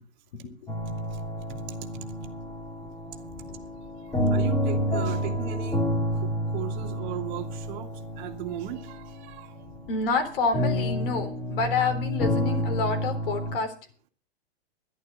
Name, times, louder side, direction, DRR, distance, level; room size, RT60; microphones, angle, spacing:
sound 1, 0.7-13.6, equal, 10° left, 3.6 m, -30 dB
voice 1, 4.3-5.8 6.1-9.6, right 12 dB, 45° right, 6 dB, 2.1 m, -37 dB
voice 2, 9.9-13.7, left 4 dB, 55° left, 6 dB, 3.8 m, -28 dB
11.5 x 11.0 x 6.3 m, 0.40 s
hypercardioid pair, 125°, 32 cm